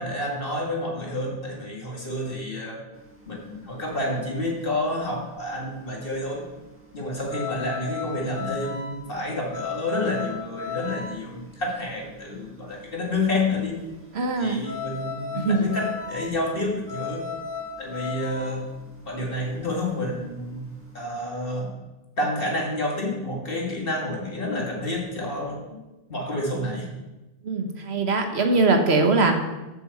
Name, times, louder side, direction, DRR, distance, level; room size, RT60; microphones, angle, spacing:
voice 1, 0.0-2.8 3.3-6.4 6.9-13.8 14.4-17.3 17.8-18.7 19.0-21.7 22.2-25.6 26.1-26.9, left 1 dB, 60° left, -2 dB, 2.5 m, -29 dB
sound 1, 3.0-21.0, left 5 dB, 10° right, 1.7 m, -36 dB
voice 2, 14.1-14.6 15.3-15.6 27.4-29.3, right 3 dB, 75° right, 5 dB, 1.4 m, -21 dB
7.6 x 7.1 x 7.3 m, 1.1 s
omnidirectional pair, 1.1 m